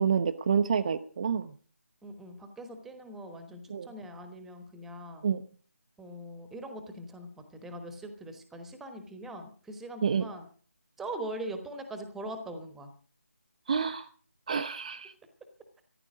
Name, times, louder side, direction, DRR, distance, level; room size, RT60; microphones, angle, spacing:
voice 1, 0.0-1.5 3.7-3.9 5.2-5.4 10.0-10.3 13.7-14.1 14.5-15.1, right 6 dB, 30° right, 8 dB, 0.6 m, -28 dB
voice 2, 2.0-5.3 6.0-10.5 11.0-12.9 13.7-13.8, right 1 dB, 5° right, 7 dB, 1.1 m, -42 dB
14.0 x 11.5 x 6.2 m, 0.43 s
figure-of-eight pair, 155°, 8 cm